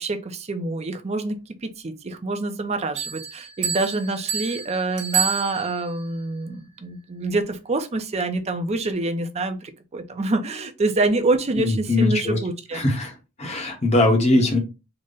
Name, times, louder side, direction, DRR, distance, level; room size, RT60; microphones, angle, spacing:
voice 1, 0.0-12.8, right 2 dB, 30° right, 7 dB, 0.5 m, -26 dB
Bell, 3.0-6.0, right 7 dB, 55° right, 1.2 m, -29 dB
voice 2, 11.6-12.4 12.7-13.1 13.4-14.6, left 2 dB, 30° left, 3 dB, 1.0 m, -20 dB
3.9 x 2.1 x 3.7 m, 0.28 s
head